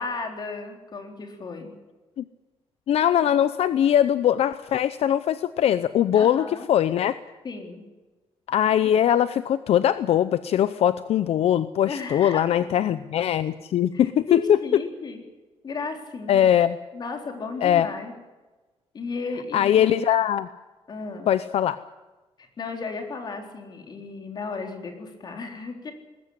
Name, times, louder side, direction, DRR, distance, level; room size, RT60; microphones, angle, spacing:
voice 1, 0.0-1.7 6.1-6.7 7.4-7.8 11.9-12.6 13.9-15.2 15.6-16.5 16.9-18.1 18.9-19.9 20.9-21.3 22.4-25.9, left 4 dB, 40° left, 4 dB, 4.0 m, -34 dB
voice 2, 2.9-7.2 8.5-14.8 16.3-16.8 17.6-17.9 19.5-20.5 21.3-21.8, left 10 dB, 75° left, 14 dB, 0.7 m, -21 dB
20.0 x 15.5 x 10.0 m, 1.2 s
wide cardioid pair, 165°, 11 cm